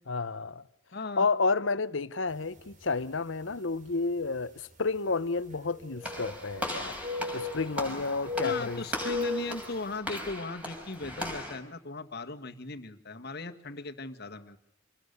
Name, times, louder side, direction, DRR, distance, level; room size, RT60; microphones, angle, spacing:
voice 1, 0.1-0.6 1.2-7.0 7.3-8.8, left 4 dB, 85° left, 1.1 m, -30 dB
voice 2, 0.9-1.3 8.4-14.6, left 3 dB, 55° left, 1.8 m, -38 dB
sound 1, 2.6-2.7 3.5-3.6 5.5-6.7 7.0-7.8 8.2-9.6, left 4 dB, 40° right, 3.6 m, -35 dB
Walk footsteps / Slam, 6.0-11.6, left 1 dB, 10° right, 5.3 m, -38 dB
26.5 x 20.0 x 6.8 m
head